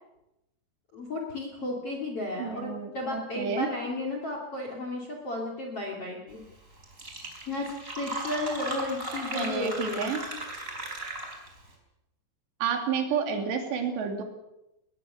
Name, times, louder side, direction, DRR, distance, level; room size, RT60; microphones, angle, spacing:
voice 1, 0.9-6.4 7.5-10.1, left 2 dB, 35° left, 2 dB, 2.8 m, -33 dB
voice 2, 2.4-3.7 9.3-10.2 12.6-14.2, right 6 dB, 60° right, 4 dB, 4.7 m, -30 dB
Fill (with liquid), 6.5-6.6 6.8-11.6, right 1 dB, 15° right, 4.2 m, -36 dB
20.5 x 20.0 x 7.0 m, 0.88 s
omnidirectional pair, 5.9 m